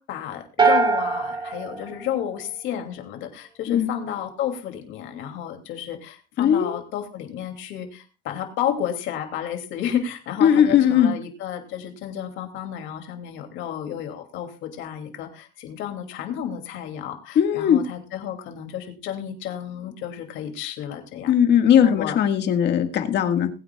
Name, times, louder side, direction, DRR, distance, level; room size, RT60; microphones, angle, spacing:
voice 1, 0.1-21.3 21.8-22.2, left 9 dB, 75° left, 5 dB, 2.6 m, -32 dB
sound 1, 0.6-2.8, right 4 dB, 25° right, 2.1 m, -23 dB
voice 2, 6.4-6.8 10.4-11.1 17.4-17.8 21.3-23.5, left 9 dB, 60° left, 7 dB, 1.7 m, -18 dB
20.5 x 9.2 x 2.3 m, 0.34 s
cardioid pair, 115°, 20 cm